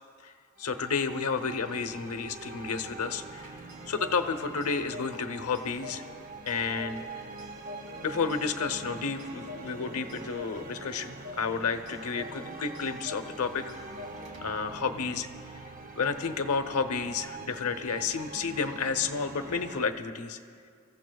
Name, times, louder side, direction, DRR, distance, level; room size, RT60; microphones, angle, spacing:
voice 1, 0.6-3.5 3.9-6.0 6.4-7.0 8.0-13.7 14.4-15.3 16.0-20.4, left 5 dB, 80° left, 9 dB, 0.8 m, -31 dB
sound 1, 0.6-19.9, right 3 dB, 40° right, 0.8 m, -44 dB
Clock, 3.2-14.7, left 3 dB, 85° right, 2.5 m, -48 dB
28.0 x 15.0 x 2.3 m, 2.2 s
head